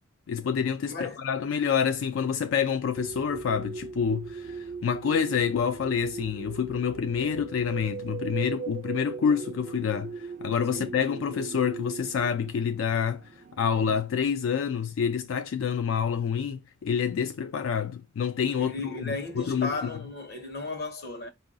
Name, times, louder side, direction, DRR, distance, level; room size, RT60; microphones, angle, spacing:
voice 1, 0.3-19.7, left 7 dB, 90° left, 0.4 m, -28 dB
voice 2, 0.9-1.3 10.7-10.9 18.5-21.3, left 3 dB, 55° left, 1.0 m, -35 dB
sound 1, 3.0-14.0, right 5 dB, 40° right, 0.3 m, -39 dB
4.6 x 2.5 x 3.8 m
head